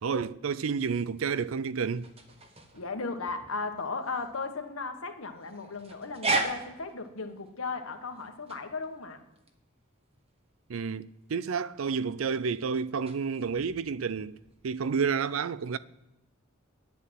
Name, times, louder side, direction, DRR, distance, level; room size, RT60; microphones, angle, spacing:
voice 1, 0.0-2.1 10.7-14.4 14.6-15.8, right 6 dB, 75° right, 0.5 m, -30 dB
sound 1, 0.7-15.0, right 2 dB, 30° right, 1.2 m, -39 dB
voice 2, 2.7-9.2, left 4 dB, 85° left, 1.5 m, -36 dB
10.0 x 8.4 x 7.6 m
head